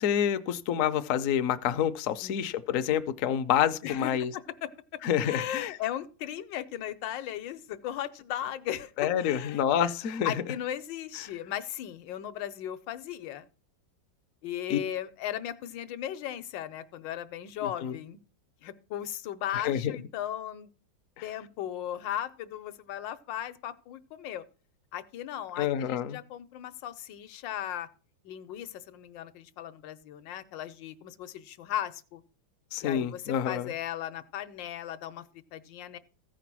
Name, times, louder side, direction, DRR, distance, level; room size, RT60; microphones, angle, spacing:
voice 1, 0.0-4.3 5.0-5.8 9.0-10.3 14.7-14.8 17.8-18.0 19.5-19.9 25.6-26.2 32.7-33.7, left 9 dB, 65° left, 0.8 m, -28 dB
voice 2, 5.2-8.9 9.2-9.9 10.2-13.5 14.4-18.2 18.6-20.7 21.2-24.4 24.9-27.9 28.2-32.2 32.8-36.0, left 11 dB, 80° left, 1.4 m, -37 dB
14.5 x 5.0 x 6.0 m
omnidirectional pair, 2.0 m